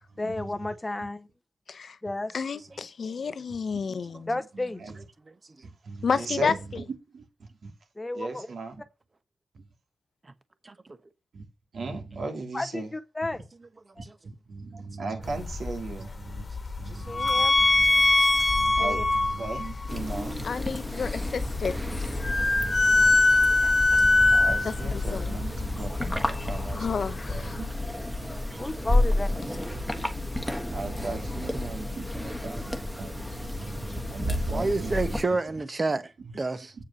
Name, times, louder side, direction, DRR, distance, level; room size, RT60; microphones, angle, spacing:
voice 1, 0.2-1.3 2.0-2.3 4.3-4.8 8.0-8.5 12.5-13.5 14.0-14.1 16.9-17.6 18.8-19.0 28.6-29.3, left 2 dB, 15° left, 0.7 m, -33 dB
voice 2, 2.3-4.3 6.0-6.8 20.4-22.3 24.6-25.4 26.7-27.6, left 5 dB, 65° left, 0.7 m, -31 dB
voice 3, 3.7-4.2 4.5-4.9 5.8-6.8 7.1-7.2 7.6-7.7 8.1-8.8 9.5-9.6 11.3-11.4 11.7-12.9 14.0-14.1 14.5-16.4 16.8-20.5 22.2-23.1 24.0-28.4 28.8-28.9 29.3-29.5 30.7-35.1 36.2-36.3, right 3 dB, 75° right, 2.9 m, -38 dB
voice 4, 5.2-5.7 8.4-8.5 10.2-10.3 10.6-10.7 14.0-14.1 16.9-17.0 17.9-18.3 23.0-23.1 23.6-23.7 25.1-25.2 26.7-26.8 28.5-28.7 33.6-36.7, right 3 dB, 30° right, 1.0 m, -32 dB
sound 1, 15.2-27.4, left 2 dB, 35° left, 1.4 m, -24 dB
sound 2, 19.9-35.2, left 1 dB, ahead, 1.4 m, -31 dB
8.7 x 4.6 x 6.8 m
wide cardioid pair, 145°, 0 cm